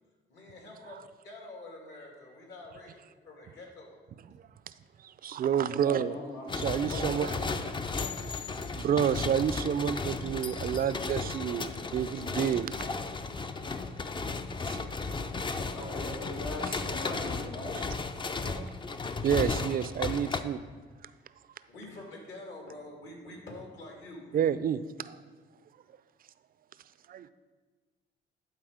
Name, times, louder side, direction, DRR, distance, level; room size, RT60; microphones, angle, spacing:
voice 1, 0.3-1.0 1.2-3.0 3.2-3.9 5.3-5.6 21.7-24.4, left 2 dB, 65° left, 2.2 m, -46 dB
voice 2, 5.0-6.1 6.5-7.3 8.7-12.7 14.7-15.1 16.7-16.8 18.4-18.7 19.2-20.6 24.3-25.2 27.1-27.3, right 8 dB, 45° right, 0.4 m, -29 dB
voice 3, 5.6-7.8 15.7-17.8, left 1 dB, 85° left, 2.2 m, -41 dB
sound 1, 6.5-20.4, left 4 dB, 25° left, 0.5 m, -34 dB
11.5 x 4.1 x 5.0 m
cardioid pair, 90°, 20 cm